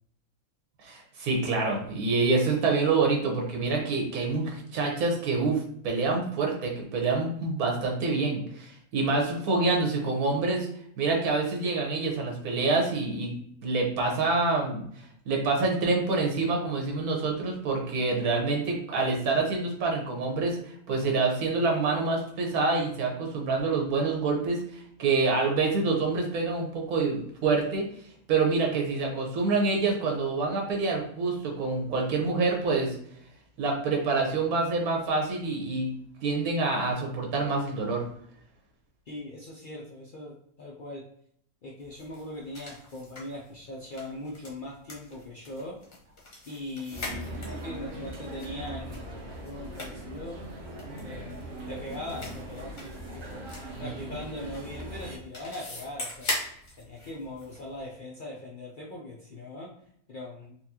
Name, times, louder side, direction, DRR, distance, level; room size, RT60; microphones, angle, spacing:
voice 1, 0.8-5.6 5.8-10.7 11.0-13.3 13.6-14.8 15.3-27.8 28.3-33.0 33.6-35.9 36.2-38.0, right 3 dB, 80° right, 0 dB, 1.4 m, -26 dB
voice 2, 39.1-41.1 41.6-45.8 46.5-50.4 51.0-53.5 53.8-56.3 56.8-59.7 60.1-60.6, left 1 dB, 70° left, -3 dB, 0.4 m, -40 dB
sound 1, 41.8-57.9, left 1 dB, 40° left, 0.8 m, -42 dB
sound 2, 46.9-55.2, right 1 dB, 55° right, 1.0 m, -40 dB
4.2 x 2.3 x 2.7 m, 0.67 s
omnidirectional pair, 1.6 m